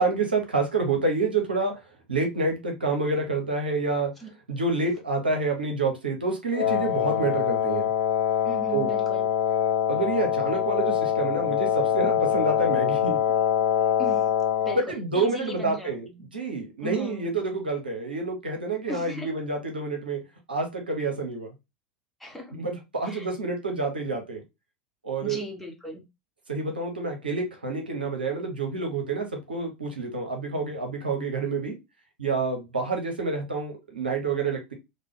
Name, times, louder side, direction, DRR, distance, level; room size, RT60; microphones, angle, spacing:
voice 1, 0.0-1.7 2.1-4.1 4.5-7.9 8.7-8.9 9.9-13.2 14.7-16.1 16.3-20.2 20.5-21.5 22.5-24.4 25.0-25.4 26.5-31.8 32.2-34.7, right 3 dB, 85° right, 0.8 m, -28 dB
Wind instrument woodwind instrument, 6.5-14.8, left 10 dB, 65° left, 1.1 m, -24 dB
voice 2, 8.4-9.3 14.0-14.3 14.6-16.3 16.8-17.3 18.9-19.3 22.2-22.6 23.1-23.3 25.2-26.0, right 1 dB, ahead, 0.9 m, -37 dB
3.3 x 2.2 x 3.5 m
figure-of-eight pair, 80°, 5 cm